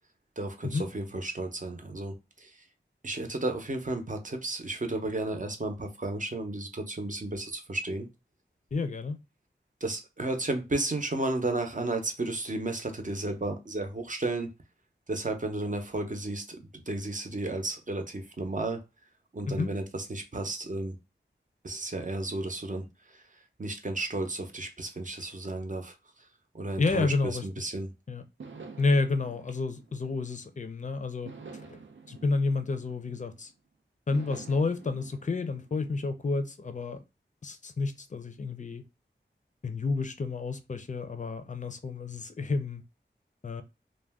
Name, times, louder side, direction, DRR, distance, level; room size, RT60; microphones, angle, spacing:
voice 1, 0.4-2.1 2.4-2.5 3.0-8.1 9.8-14.5 15.1-16.6 16.9-18.8 19.3-21.0 21.6-22.8 23.6-25.9 26.5-27.9, right 2 dB, 45° right, 0.6 m, -33 dB
voice 2, 8.7-9.2 19.5-19.7 26.8-27.4 28.1-28.2 28.8-31.8 32.1-33.5 34.1-37.0 37.4-38.8 39.6-42.8 43.4-43.6, left 3 dB, 40° left, 0.5 m, -30 dB
sound 1, 28.4-30.7 31.3-33.5 34.1-35.9, right 4 dB, 85° right, 0.5 m, -48 dB
2.4 x 2.2 x 3.4 m
wide cardioid pair, 60°, 19 cm